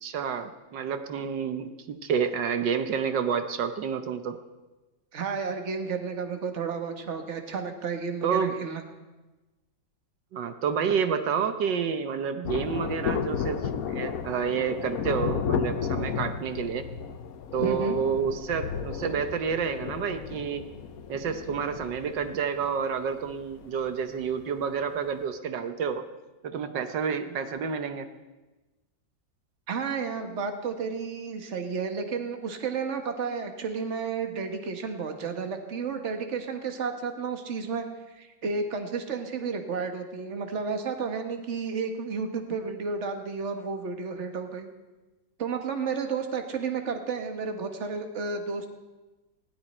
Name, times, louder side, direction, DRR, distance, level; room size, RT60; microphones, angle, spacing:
voice 1, 0.0-4.4 8.2-8.5 10.3-13.6 13.9-16.9 17.5-20.6 21.1-26.1 26.4-28.1, right 6 dB, 70° right, 8 dB, 1.5 m, -29 dB
voice 2, 5.1-8.8 17.6-18.0 29.7-44.7 45.4-48.7, right 5 dB, 40° right, 5 dB, 1.6 m, -32 dB
Thunder, 12.4-24.4 24.7-24.8, left 7 dB, 60° left, 1.1 m, -33 dB
19.5 x 16.0 x 4.3 m, 1.1 s
omnidirectional pair, 2.1 m